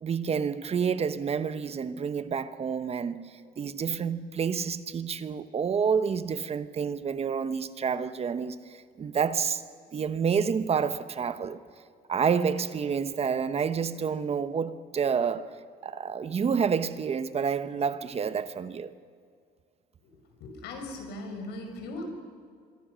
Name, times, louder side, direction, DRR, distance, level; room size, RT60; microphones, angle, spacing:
voice 1, 0.0-3.3 3.6-9.6 9.9-11.6 12.1-15.6 15.8-18.9, right 6 dB, 35° right, 1.1 m, -29 dB
voice 2, 20.4-22.0, left 2 dB, 85° left, 5.7 m, -38 dB
26.5 x 24.0 x 6.4 m
cardioid pair, 110°, 17 cm